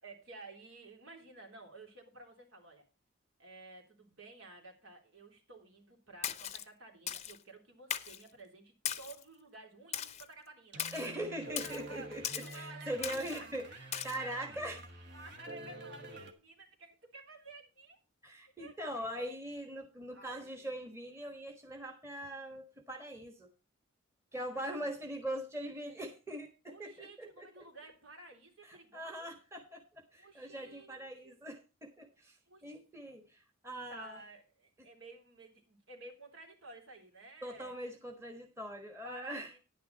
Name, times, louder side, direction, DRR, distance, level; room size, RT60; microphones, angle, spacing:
voice 1, 0.0-2.9 3.4-10.9 11.6-13.5 14.2-14.7 15.1-18.0 18.3-19.1 20.1-20.7 24.5-24.9 26.7-29.3 30.2-31.4 32.5-32.7 33.1-33.2 33.7-37.7 39.0-39.6, right 2 dB, 80° right, 2 dB, 3.6 m, -53 dB
Splash splatter, 6.2-6.6 7.1-7.4 7.9-8.2 8.9-9.2 9.9-10.3 10.8-11.1 11.6-11.8 12.2-12.6 13.0-13.4 13.9-14.2, left 9 dB, 35° left, 0.7 m, -38 dB
sound 1, 10.7-16.3, right 1 dB, 55° right, 1.6 m, -48 dB
voice 2, 10.9-12.2 12.5-13.7 14.0-14.8 18.2-23.5 24.3-27.6 28.7-34.2 37.4-39.5, right 1 dB, 15° right, 3 dB, 1.3 m, -42 dB
10.5 x 9.6 x 4.0 m, 0.31 s
head